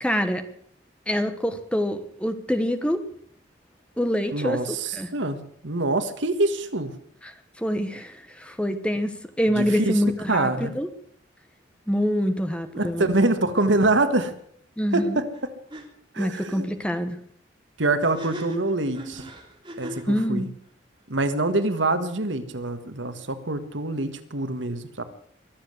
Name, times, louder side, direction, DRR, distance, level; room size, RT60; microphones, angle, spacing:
voice 1, 0.0-0.4 1.1-3.0 4.0-5.1 7.2-10.9 11.9-13.1 14.8-15.2 16.2-17.2 20.1-20.5, equal, 5° left, 9 dB, 1.2 m, -26 dB
voice 2, 4.3-7.0 9.5-10.0 10.3-10.7 12.7-14.3 14.9-15.5 16.1-16.7 17.8-19.3 19.8-20.5 21.1-25.0, right 2 dB, 70° right, 9 dB, 1.6 m, -25 dB
sound 1, 15.3-15.4 15.7-15.8 18.0-20.1, equal, 25° right, 3.5 m, -38 dB
22.5 x 7.7 x 8.1 m, 0.63 s
head